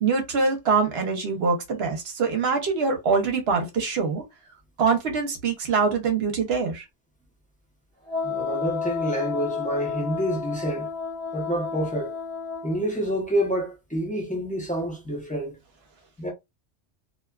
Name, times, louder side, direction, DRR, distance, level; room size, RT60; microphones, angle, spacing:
voice 1, 0.0-4.2 4.8-6.8, right 5 dB, 65° right, 0.9 m, -24 dB
Wind instrument woodwind instrument, 8.1-12.8, left 6 dB, 25° right, 1.2 m, -31 dB
voice 2, 8.2-10.9 11.3-12.1 12.6-15.6 16.2-16.3, right 1 dB, 10° left, 0.6 m, -28 dB
2.7 x 2.2 x 2.3 m
omnidirectional pair, 1.2 m